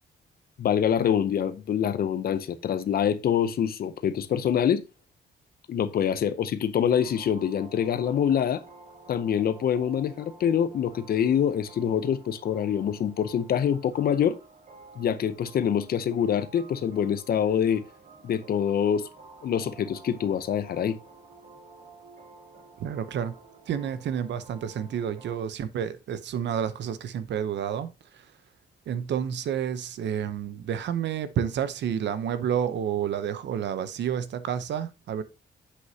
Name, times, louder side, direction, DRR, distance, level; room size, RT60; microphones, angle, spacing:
voice 1, 0.6-4.8 5.7-8.6 9.1-14.4 15.0-17.8 18.2-19.1 19.4-21.0, left 8 dB, 55° left, 0.6 m, -25 dB
sound 1, 6.9-25.4, right 3 dB, 50° right, 1.6 m, -51 dB
voice 2, 22.8-23.3 23.7-28.2 28.9-35.2, right 8 dB, 80° right, 0.7 m, -30 dB
7.8 x 6.4 x 2.8 m
wide cardioid pair, 165°, 18 cm